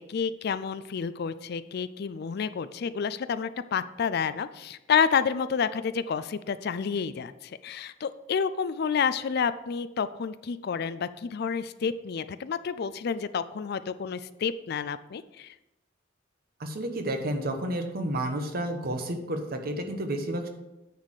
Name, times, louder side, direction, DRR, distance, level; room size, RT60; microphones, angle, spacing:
voice 1, 0.0-15.5, left 6 dB, 55° left, 14 dB, 0.4 m, -29 dB
voice 2, 16.6-20.5, right 1 dB, 55° right, 6 dB, 1.1 m, -31 dB
9.4 x 4.2 x 6.5 m, 0.97 s
head